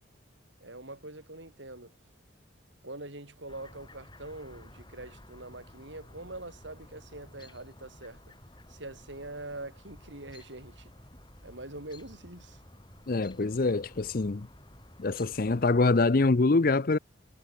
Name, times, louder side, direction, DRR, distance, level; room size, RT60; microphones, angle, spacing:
voice 1, 0.6-1.9 2.8-8.2 8.7-10.9 11.4-12.6, right 2 dB, 70° right, 5.3 m, -44 dB
Chirp tweet, 3.5-15.6, left 1 dB, 25° left, 7.0 m, -53 dB
voice 2, 13.1-14.5 15.0-17.0, left 3 dB, 45° left, 0.6 m, -25 dB
head